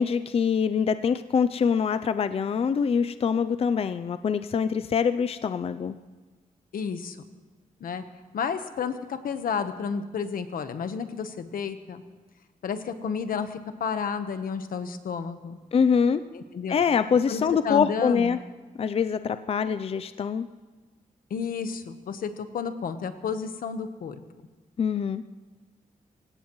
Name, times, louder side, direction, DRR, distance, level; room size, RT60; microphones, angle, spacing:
voice 1, 0.0-5.9 15.7-16.2 16.7-18.4 18.8-20.5 24.8-25.2, left 6 dB, 45° left, 12 dB, 0.5 m, -24 dB
voice 2, 6.7-7.2 7.8-8.0 8.3-12.0 12.6-15.6 16.3-16.8 17.3-18.4 21.3-24.2, left 6 dB, 85° left, 9 dB, 1.1 m, -31 dB
25.5 x 16.5 x 3.1 m, 1.4 s
wide cardioid pair, 125°, 14 cm